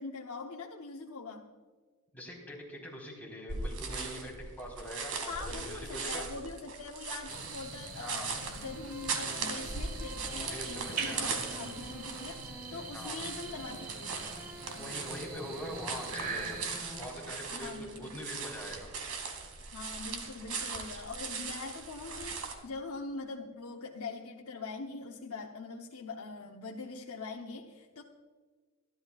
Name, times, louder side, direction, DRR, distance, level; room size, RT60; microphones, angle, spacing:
voice 1, 0.0-1.5 5.3-14.3 17.5-18.2 19.7-28.0, left 3 dB, 75° left, 0 dB, 0.9 m, -43 dB
voice 2, 2.1-6.2 7.9-8.3 10.4-11.3 12.9-13.2 14.8-18.9, equal, 10° left, -4 dB, 4.1 m, -43 dB
sound 1, 3.5-22.5, right 4 dB, 80° right, 2.3 m, -39 dB
sound 2, 7.3-16.8, right 4 dB, 40° right, 1.3 m, -43 dB
sound 3, 8.4-17.1, equal, 10° right, 3.9 m, -48 dB
25.0 x 12.5 x 2.4 m, 1.5 s
head